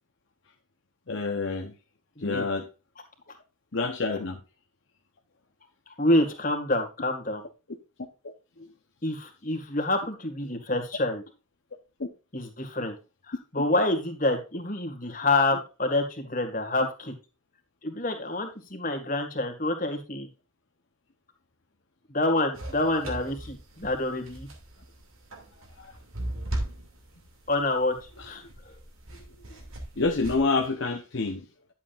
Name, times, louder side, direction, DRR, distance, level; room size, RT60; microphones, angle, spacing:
voice 1, 1.1-1.7 2.2-2.7 3.7-4.4 12.0-12.1 25.8-25.9 28.2-28.3 30.0-31.4, left 3 dB, 60° left, 2 dB, 0.9 m, -27 dB
voice 2, 5.9-7.5 9.0-11.2 12.3-12.9 13.3-17.1 17.8-20.3 22.1-24.5 27.5-27.9 28.3-28.4, left 2 dB, 40° left, 4 dB, 1.9 m, -27 dB
sound 1, 22.5-30.6, right 1 dB, 80° right, 2.5 m, -39 dB
11.0 x 7.5 x 2.5 m, 0.30 s
head